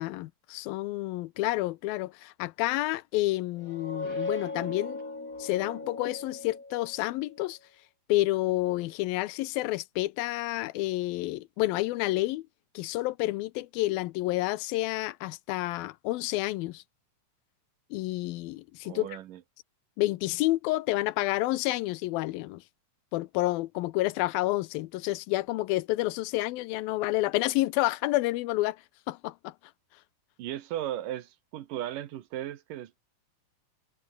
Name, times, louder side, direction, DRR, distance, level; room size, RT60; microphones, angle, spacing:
voice 1, 0.0-5.0 5.4-7.6 8.1-12.5 12.8-16.8 17.9-19.2 20.0-22.6 23.1-28.8 29.1-29.5, left 18 dB, 85° left, 2.6 m, -29 dB
sound 1, 3.6-7.2, left 2 dB, 20° left, 4.7 m, -37 dB
voice 2, 18.8-19.4 30.4-33.0, right 12 dB, 70° right, 2.7 m, -36 dB
omnidirectional pair, 4.2 m